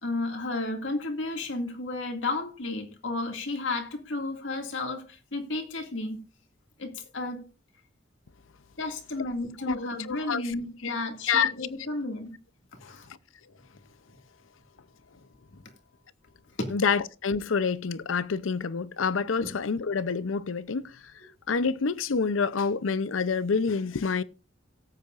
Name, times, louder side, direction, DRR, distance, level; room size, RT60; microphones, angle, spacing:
voice 1, 0.0-6.2 6.8-7.5 8.8-12.4 12.7-13.1 14.1-14.2 16.6-16.7 19.4-19.5, left 2 dB, 70° left, 2.2 m, -33 dB
voice 2, 9.6-10.4 10.8-10.9 11.3-11.5 12.8-12.9 16.7-21.0 21.5-24.2, left 5 dB, 90° left, 0.6 m, -27 dB
18.0 x 8.3 x 2.5 m
head